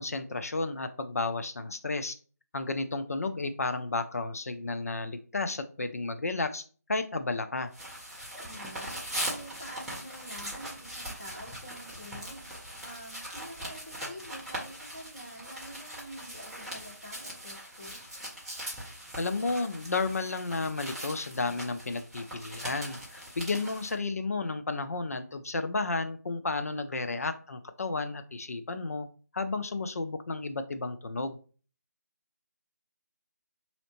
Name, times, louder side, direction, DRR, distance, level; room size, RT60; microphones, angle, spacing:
voice 1, 0.0-2.1 2.5-6.6 6.9-7.7 19.2-29.1 29.3-31.4, left 3 dB, 60° left, 8 dB, 0.4 m, -32 dB
sound 1, 7.7-23.9, right 1 dB, 5° right, 0.5 m, -41 dB
voice 2, 8.4-9.0 9.2-18.0, equal, 30° left, -5 dB, 1.5 m, -47 dB
4.0 x 2.8 x 2.8 m, 0.39 s
figure-of-eight pair, 155°, 9 cm